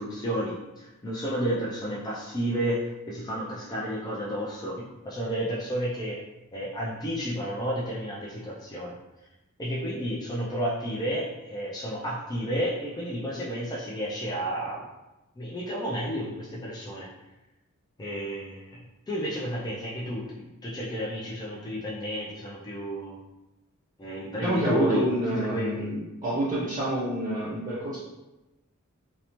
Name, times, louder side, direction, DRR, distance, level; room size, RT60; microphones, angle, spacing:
voice 1, 0.0-6.2 6.5-9.0 9.6-14.8 15.4-17.1 18.0-18.8 19.1-23.2 24.0-25.9, equal, 20° left, -6 dB, 0.3 m, -31 dB
voice 2, 24.4-26.0 26.2-28.0, right 1 dB, 20° right, -8 dB, 0.6 m, -27 dB
2.7 x 2.0 x 2.9 m, 1.0 s
head